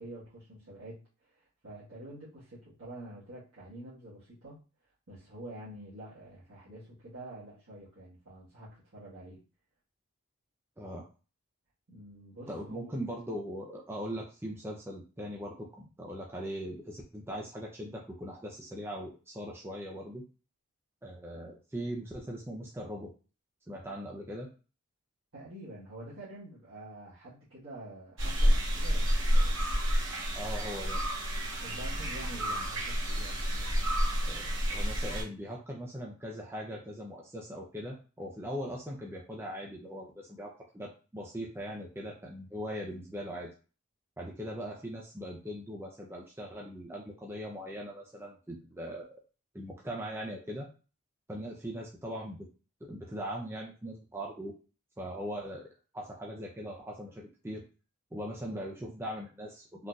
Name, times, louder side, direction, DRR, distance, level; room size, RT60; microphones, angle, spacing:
voice 1, 0.0-4.6 5.1-9.4 11.9-13.0 25.3-29.6 31.6-34.0, right 1 dB, 75° right, -11 dB, 1.3 m, -47 dB
voice 2, 12.5-20.2 21.0-23.1 23.7-24.5 30.3-31.0 34.3-43.5 44.2-49.1 49.5-50.7 51.3-52.5 52.8-54.5 55.0-55.7 55.9-57.6 58.1-59.9, equal, 10° right, -2 dB, 0.4 m, -40 dB
sound 1, 28.2-35.2, equal, 60° right, 1.1 m, -29 dB
3.8 x 2.6 x 2.3 m, 0.35 s
head